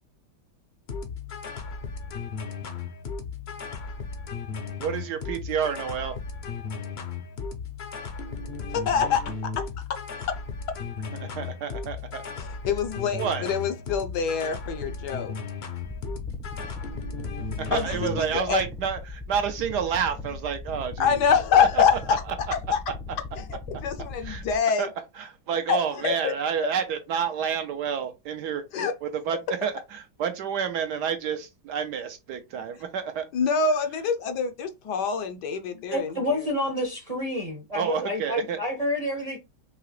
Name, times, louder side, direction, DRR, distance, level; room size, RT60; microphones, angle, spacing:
sound 1, 0.9-18.2, left 5 dB, 55° left, 0.7 m, -35 dB
voice 1, 4.8-6.2 11.2-12.2 13.1-13.5 17.6-21.2 21.6-21.8 24.2-24.4 24.8-24.9 25.2-28.6 29.0-33.3 37.7-38.6, right 7 dB, 70° right, 1.2 m, -29 dB
voice 2, 8.7-10.0 10.3-10.4 12.4-15.4 17.7-18.6 21.0-22.2 22.5-22.8 23.4-24.9 25.7-26.3 28.7-28.9 33.3-36.5, left 6 dB, 70° left, 1.2 m, -25 dB
sound 2, 15.8-24.6, left 3 dB, ahead, 0.4 m, -39 dB
voice 3, 35.9-39.4, left 1 dB, 30° right, 0.7 m, -28 dB
4.7 x 2.9 x 3.1 m
omnidirectional pair, 2.0 m